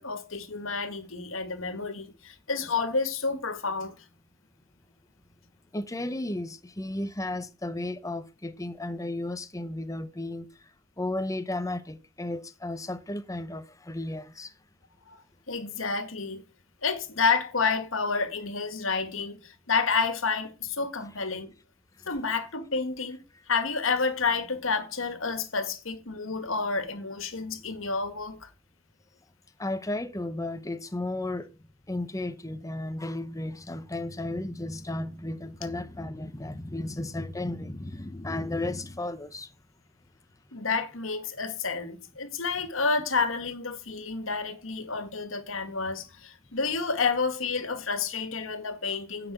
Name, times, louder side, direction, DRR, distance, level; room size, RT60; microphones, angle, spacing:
voice 1, 0.0-4.1 15.1-15.2 15.5-16.5 16.8-21.5 22.1-23.2 23.5-28.5 40.5-49.3, left 4 dB, 75° left, 1.9 m, -30 dB
voice 2, 5.7-10.5 11.0-14.5 29.6-31.5 31.9-39.5, left 1 dB, 15° left, 1.0 m, -34 dB
10.0 x 6.0 x 8.1 m
head